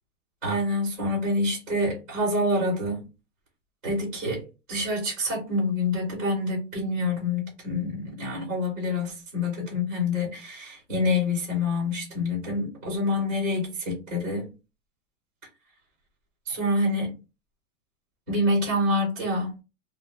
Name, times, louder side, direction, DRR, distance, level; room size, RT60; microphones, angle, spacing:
voice 1, 0.4-3.0 3.8-4.4 4.7-14.5 16.5-17.1 18.3-19.5, left 2 dB, ahead, 0.4 m, -27 dB
2.5 x 2.1 x 3.1 m
supercardioid pair, 175°, 39 cm